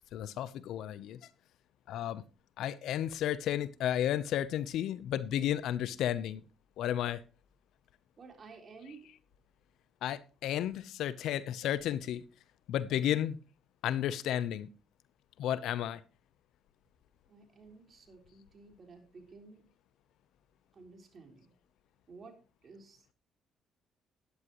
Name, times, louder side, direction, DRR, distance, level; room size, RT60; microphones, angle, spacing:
voice 1, 0.1-1.2 1.9-2.2 2.6-6.4 6.8-7.2 10.0-12.2 12.7-13.4 13.8-14.7 15.4-16.0, left 11 dB, 80° left, 0.7 m, -32 dB
voice 2, 8.2-9.1 12.9-13.2 17.3-19.7 20.7-21.5 22.1-23.1, right 4 dB, 45° right, 3.9 m, -53 dB
13.0 x 11.0 x 3.1 m
supercardioid pair, 75°, 0 cm